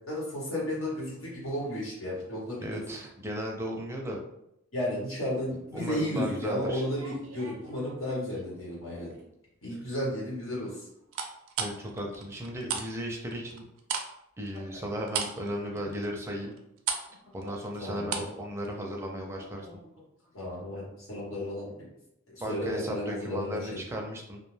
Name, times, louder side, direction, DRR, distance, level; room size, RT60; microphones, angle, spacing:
voice 1, 0.1-2.8 4.7-9.1 9.6-10.7 14.7-14.8 15.7-15.8 17.2-18.2 19.6-19.7 20.3-21.9 22.3-23.8, left 1 dB, 80° left, -5 dB, 1.1 m, -33 dB
voice 2, 2.6-4.2 5.7-6.8 11.6-13.6 14.4-16.5 17.3-19.7 22.4-24.4, equal, 15° right, 0 dB, 0.4 m, -36 dB
sound 1, 6.7-8.4 8.9-9.4 11.1-12.9 13.1-18.4 18.6-18.8, right 6 dB, 75° right, 0.4 m, -36 dB
2.4 x 2.2 x 3.1 m, 0.80 s
head